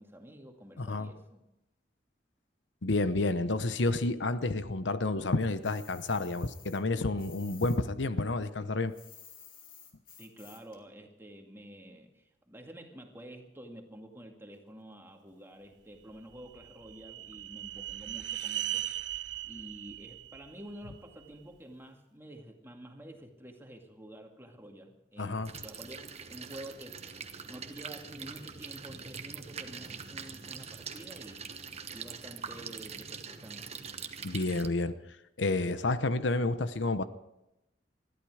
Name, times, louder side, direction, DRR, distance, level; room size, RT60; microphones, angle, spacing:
voice 1, 0.0-1.4 10.2-19.2 19.4-31.4 31.9-33.8, right 1 dB, 15° right, 3 dB, 2.2 m, -49 dB
voice 2, 0.8-1.1 2.8-8.9 25.2-25.5 34.2-34.9 35.4-37.0, left 2 dB, 85° left, 12 dB, 0.9 m, -30 dB
sound 1, 5.6-7.8 8.1-10.8, left 7 dB, 50° left, 2.7 m, -53 dB
sound 2, 16.1-21.3, right 12 dB, 75° right, 0.8 m, -39 dB
sound 3, 25.5-34.7, right 6 dB, 35° right, 1.1 m, -43 dB
20.5 x 14.0 x 4.9 m, 0.89 s
head